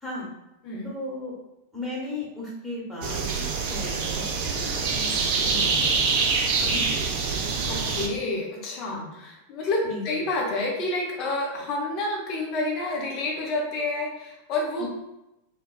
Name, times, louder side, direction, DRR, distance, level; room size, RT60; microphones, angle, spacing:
voice 1, 0.8-1.3 1.7-4.2 4.5-6.1 6.6-7.0 8.9-9.1 9.8-10.0 14.8-14.9, left 2 dB, ahead, -7 dB, 1.2 m, -36 dB
sound 1, 3.0-8.1, right 4 dB, 45° right, 0.4 m, -25 dB
voice 2, 7.7-14.9, left 2 dB, 40° left, -1 dB, 0.8 m, -29 dB
4.0 x 2.2 x 2.3 m, 0.91 s
figure-of-eight pair, 90°, 0 cm